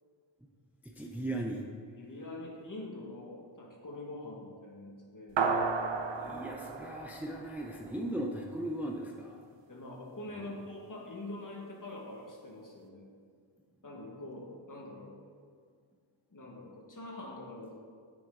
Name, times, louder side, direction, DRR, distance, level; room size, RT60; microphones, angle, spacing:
voice 1, 0.8-1.7 6.2-9.4 10.4-10.5, right 1 dB, 5° right, 0 dB, 0.6 m, -38 dB
voice 2, 2.0-5.4 9.7-13.1 13.8-15.2 16.3-17.8, left 2 dB, 40° left, -1 dB, 1.6 m, -44 dB
sound 1, 5.4-8.1, right 4 dB, 60° right, 0.7 m, -33 dB
7.7 x 7.3 x 3.8 m, 2.1 s
wide cardioid pair, 85°, 49 cm